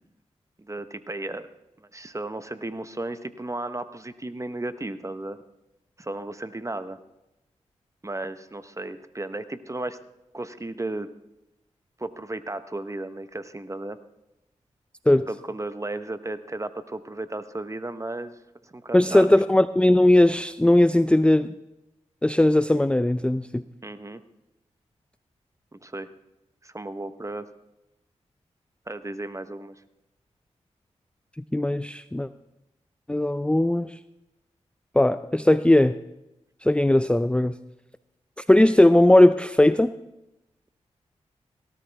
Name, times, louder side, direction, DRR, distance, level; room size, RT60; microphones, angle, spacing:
voice 1, 0.6-1.5 1.9-5.4 6.0-7.0 8.0-10.0 10.3-11.1 12.0-14.0 15.3-19.3 23.8-24.2 25.7-26.1 26.6-27.5 28.9-29.7, right 2 dB, 25° right, 11 dB, 1.1 m, -34 dB
voice 2, 18.9-21.5 22.2-23.6 31.5-32.3 33.1-33.9 35.0-35.9 36.6-37.6 38.5-39.9, left 1 dB, 10° left, 13 dB, 0.5 m, -18 dB
17.5 x 13.0 x 3.5 m, 0.94 s
cardioid pair, 45°, 12 cm